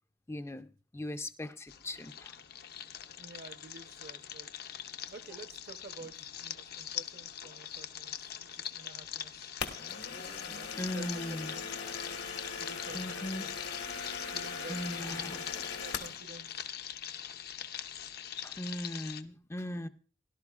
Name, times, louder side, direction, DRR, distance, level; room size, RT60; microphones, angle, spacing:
voice 1, 0.3-0.7 0.9-2.3 10.8-11.5 12.9-13.5 14.0-14.3 14.7-15.7 18.4-19.9, left 1 dB, 15° left, 9 dB, 0.4 m, -39 dB
sound 1, 1.7-19.2, left 9 dB, 60° left, 0.6 m, -43 dB
voice 2, 3.2-4.5 5.0-9.5 10.4-11.7 12.4-13.6 14.3-15.2 15.7-16.6, right 3 dB, 60° right, 10 dB, 0.8 m, -51 dB
sound 2, 9.6-16.2, left 5 dB, 80° left, 1.3 m, -40 dB
17.5 x 11.5 x 2.4 m, 0.37 s
head